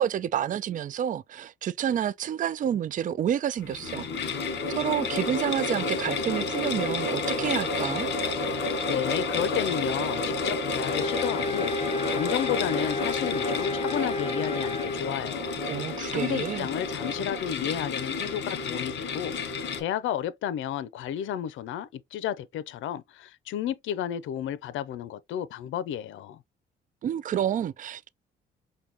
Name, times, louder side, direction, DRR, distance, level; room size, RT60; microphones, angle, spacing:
voice 1, 0.0-4.5 4.7-8.1 15.7-16.7 27.0-28.1, right 10 dB, 40° right, 0.4 m, -29 dB
sound 1, 3.6-19.8, left 3 dB, 60° left, 1.4 m, -30 dB
voice 2, 8.6-26.4, left 10 dB, 80° left, 0.6 m, -32 dB
sound 2, 10.8-15.0, left 4 dB, 30° left, 0.9 m, -33 dB
5.3 x 2.2 x 2.9 m
cardioid pair, 90°, 20 cm